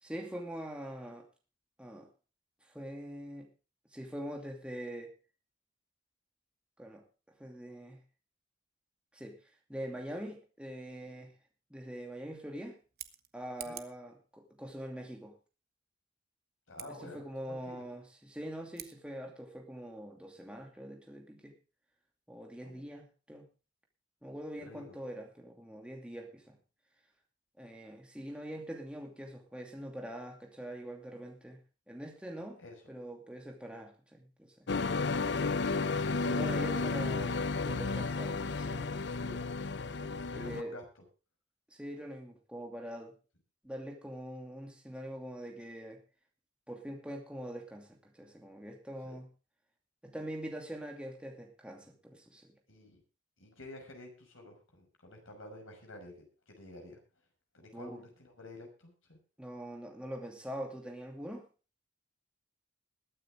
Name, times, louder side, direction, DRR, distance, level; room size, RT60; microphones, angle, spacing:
voice 1, 0.0-1.3 1.8-2.1 2.6-3.5 3.9-5.1 6.8-7.0 7.4-8.0 9.1-9.4 9.7-11.3 11.7-12.8 13.3-15.4 16.9-21.5 22.3-23.5 24.2-26.6 27.6-31.6 31.9-32.6 32.9-34.7 36.3-38.9 40.0-40.8 41.7-43.1 43.6-46.0 46.7-49.3 50.0-52.6 57.7-58.0 59.4-61.5, equal, 5° right, 1 dB, 2.6 m, -43 dB
Scissors, 12.8-14.0 16.7-16.9 18.7-19.0, right 13 dB, 50° right, 1.1 m, -47 dB
voice 2, 16.7-17.2 17.5-17.8 22.6-22.9 24.6-24.9 32.6-32.8 35.7-37.0 39.1-39.5 40.3-40.8 49.0-49.2 52.7-53.0 53.4-57.0 57.5-59.2, left 2 dB, 90° left, 3 dB, 5.8 m, -49 dB
sound 1, 34.7-40.6, left 4 dB, 55° left, 0.6 m, -32 dB
21.5 x 9.2 x 3.6 m, 0.33 s
head